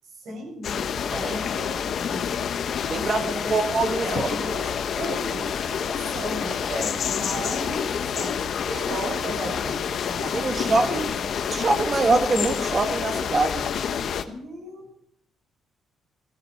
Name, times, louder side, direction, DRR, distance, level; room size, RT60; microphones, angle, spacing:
voice 1, 0.1-2.6 2.9-3.6 4.0-6.6 7.0-11.1 14.2-14.9, right 2 dB, 70° right, 1 dB, 6.9 m, -36 dB
sound 1, 0.6-14.2, left 7 dB, 60° left, 1.0 m, -28 dB
voice 2, 1.1-1.4 2.9-4.3 6.7-7.0 10.3-11.1 11.5-13.7, right 3 dB, 35° right, 7 dB, 1.7 m, -24 dB
15.5 x 15.0 x 4.6 m, 0.70 s
cardioid pair, 90°, 0 cm